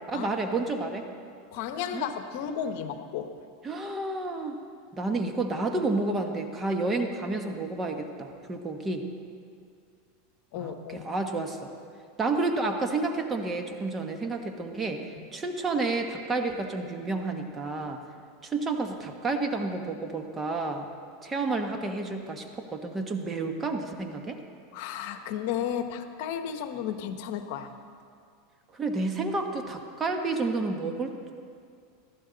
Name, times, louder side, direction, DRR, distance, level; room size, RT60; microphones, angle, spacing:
voice 1, 0.1-1.1 1.9-2.0 3.6-4.5 4.9-9.0 10.6-11.7 12.2-15.0 15.3-18.0 18.4-20.9 21.2-24.4 28.7-31.3, right 3 dB, 20° right, 4 dB, 1.3 m, -30 dB
voice 2, 1.5-3.3 10.5-11.1 15.2-15.3 24.7-27.7, left 8 dB, 65° left, 8 dB, 1.0 m, -33 dB
19.0 x 14.0 x 4.0 m, 2.3 s
supercardioid pair, 125°, 0 cm